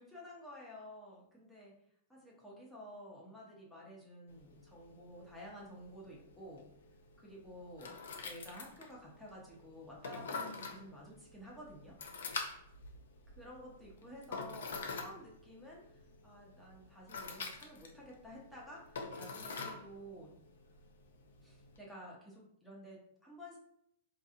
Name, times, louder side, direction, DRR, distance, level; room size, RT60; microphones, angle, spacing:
voice 1, 0.0-1.7 2.1-6.7 7.2-8.0 8.2-12.0 13.4-20.4 21.4-23.6, equal, 5° left, -5 dB, 0.7 m, -52 dB
sound 1, 4.3-21.8, left 4 dB, 90° left, 0.5 m, -47 dB
3.9 x 2.7 x 2.4 m, 0.73 s
hypercardioid pair, 145°, 0 cm